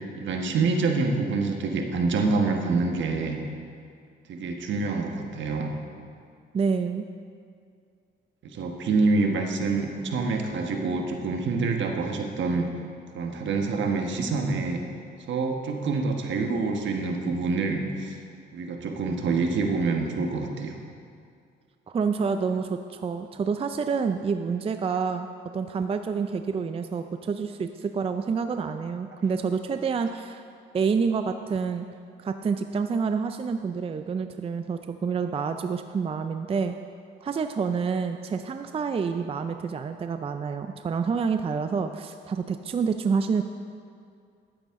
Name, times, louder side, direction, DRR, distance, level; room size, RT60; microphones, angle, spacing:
voice 1, 0.2-3.4 4.3-5.7 8.4-12.7 13.1-14.8 15.3-18.2 18.5-20.8, right 3 dB, 70° right, 3 dB, 1.3 m, -26 dB
voice 2, 6.5-7.1 21.9-25.3 25.5-30.4 30.7-31.9 32.2-36.7 37.2-43.4, right 5 dB, 30° right, 8 dB, 0.4 m, -28 dB
11.5 x 9.2 x 3.7 m, 2.3 s
cardioid pair, 90°, 20 cm